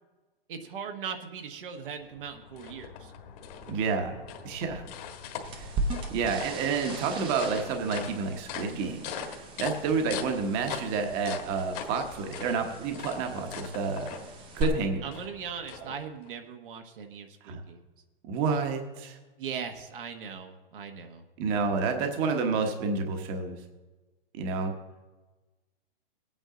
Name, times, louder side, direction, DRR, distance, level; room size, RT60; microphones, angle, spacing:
voice 1, 0.5-3.1 15.0-17.8 19.4-21.2, right 7 dB, 60° right, 5 dB, 1.3 m, -39 dB
sound 1, 1.9-16.3, left 7 dB, 40° left, 1.5 m, -42 dB
voice 2, 3.7-4.2 4.4-4.8 5.5-5.7 6.1-14.2 14.5-15.0 15.8-15.9 17.4-17.6 18.2-19.2 21.4-23.6 24.4-24.7, right 4 dB, 30° right, 5 dB, 1.2 m, -29 dB
sound 2, 5.4-14.6, right 3 dB, 15° right, 0.7 m, -39 dB
19.5 x 8.9 x 3.8 m, 1.2 s
hypercardioid pair, 150°, 29 cm